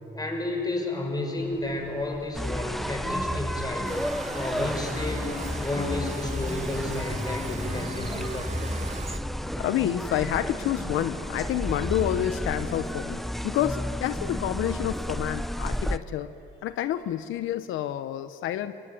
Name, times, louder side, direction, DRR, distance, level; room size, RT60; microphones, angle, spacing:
voice 1, 0.1-3.9 4.3-8.8, left 1 dB, 20° left, 2 dB, 6.6 m, -32 dB
sound 1, 1.4-13.2, left 4 dB, 50° left, 3.4 m, -42 dB
sound 2, 2.3-16.0, equal, ahead, 0.7 m, -32 dB
sound 3, 3.8-9.2, right 6 dB, 35° right, 0.9 m, -41 dB
voice 2, 9.6-16.3 16.6-18.7, left 12 dB, 85° left, 11 dB, 0.9 m, -29 dB
26.5 x 21.5 x 9.7 m, 2.7 s
cardioid pair, 90°, 20 cm